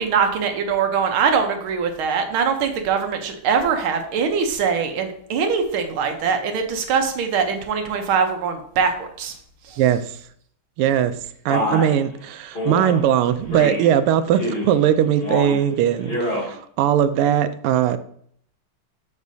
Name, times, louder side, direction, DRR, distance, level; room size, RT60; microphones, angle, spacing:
voice 1, 0.0-9.3 9.7-9.8, right 6 dB, 75° right, 5 dB, 1.7 m, -22 dB
voice 2, 10.8-11.1 11.4-18.0, right 10 dB, 90° right, 12 dB, 1.5 m, -19 dB
Male speech man speaking, 11.5-12.0 12.5-12.9 13.5-13.9 14.3-14.8 15.2-15.6 16.0-16.5, left 1 dB, 25° left, 2.7 m, -26 dB
6.8 x 6.3 x 2.7 m, 0.62 s
omnidirectional pair, 2.4 m